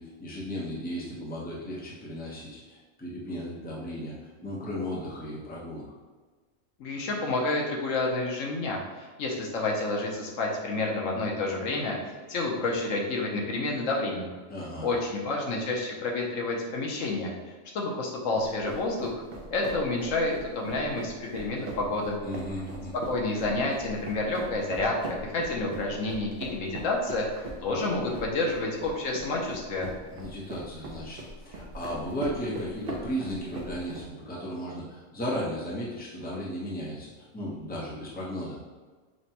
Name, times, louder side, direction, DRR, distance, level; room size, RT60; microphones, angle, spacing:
voice 1, 0.0-5.8 14.5-14.9 22.2-22.9 30.1-38.6, equal, 10° left, -6 dB, 0.7 m, -35 dB
voice 2, 6.8-11.9 12.3-14.3 14.8-17.3 17.7-19.2 19.5-22.2 23.1-27.3 27.6-29.9, left 2 dB, 75° left, -1 dB, 1.1 m, -29 dB
sound 1, 18.4-34.0, right 2 dB, 55° right, 0.8 m, -40 dB
5.9 x 2.2 x 2.8 m, 1.4 s
omnidirectional pair, 1.4 m